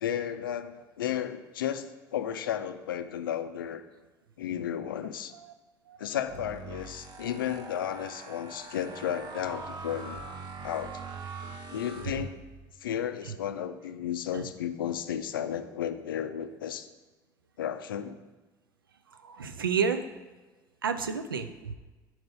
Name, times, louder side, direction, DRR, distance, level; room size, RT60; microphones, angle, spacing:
voice 1, 0.0-3.8 4.4-5.3 6.0-10.2 10.6-11.0 11.4-12.3 12.8-16.9 17.6-18.2, left 9 dB, 80° left, 10 dB, 0.4 m, -33 dB
sound 1, 6.2-12.7, right 4 dB, 45° right, 0.8 m, -43 dB
voice 2, 19.2-20.1 20.8-21.7, right 6 dB, 85° right, 9 dB, 0.4 m, -30 dB
5.2 x 4.6 x 5.5 m, 1.2 s
figure-of-eight pair, 55°, 11 cm